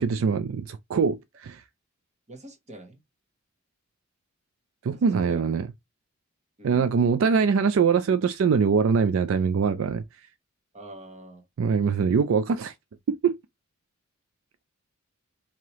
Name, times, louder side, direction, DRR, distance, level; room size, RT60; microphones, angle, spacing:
voice 1, 0.0-1.6 4.8-5.7 6.6-10.3 11.6-12.7 13.1-13.4, right 5 dB, 70° right, 0.4 m, -23 dB
voice 2, 2.3-3.0 4.8-5.4 6.6-7.0 10.7-11.4, right 1 dB, 35° right, 1.2 m, -44 dB
4.6 x 2.9 x 2.9 m
head